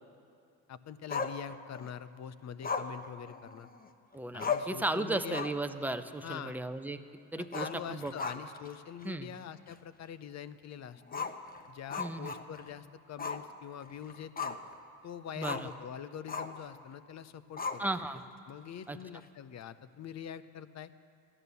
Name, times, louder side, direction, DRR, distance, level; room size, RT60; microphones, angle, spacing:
voice 1, 0.7-3.7 4.3-5.4 6.2-6.6 7.4-11.3 11.7-14.6 15.0-17.8 18.5-20.9, left 9 dB, 45° left, 14 dB, 0.7 m, -44 dB
Growling, 1.1-1.9 2.6-3.9 4.1-4.2 4.4-4.8 5.2-5.7 6.0-6.1 7.4-8.7 9.0-9.1 9.7-9.8 11.1-12.7 13.2-13.5 13.8-14.7 15.4-15.7 16.3-16.6 17.6-18.2, left 5 dB, 25° left, 0.9 m, -37 dB
voice 2, 4.1-7.0 7.3-8.1 9.0-9.3 12.0-12.3 15.4-15.7 17.8-18.2 18.9-19.0, right 2 dB, 5° right, 8 dB, 0.7 m, -35 dB
13.5 x 11.0 x 6.9 m, 2.7 s
supercardioid pair, 85°, 37 cm